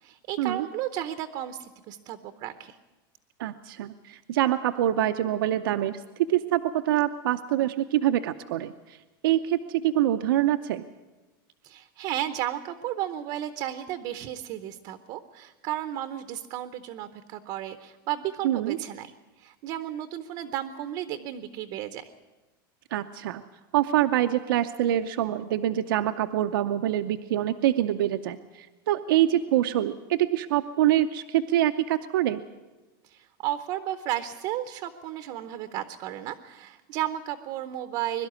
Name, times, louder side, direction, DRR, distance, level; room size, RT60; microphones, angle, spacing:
voice 1, 0.0-2.8 11.6-19.1 19.4-22.1 33.0-38.3, right 12 dB, 35° right, 10 dB, 0.7 m, -33 dB
voice 2, 3.4-6.0 6.3-9.0 9.2-10.8 18.4-18.8 22.9-23.4 23.7-32.4, right 12 dB, 70° right, 8 dB, 0.7 m, -25 dB
22.5 x 12.0 x 9.5 m, 1.2 s
supercardioid pair, 175°, 12 cm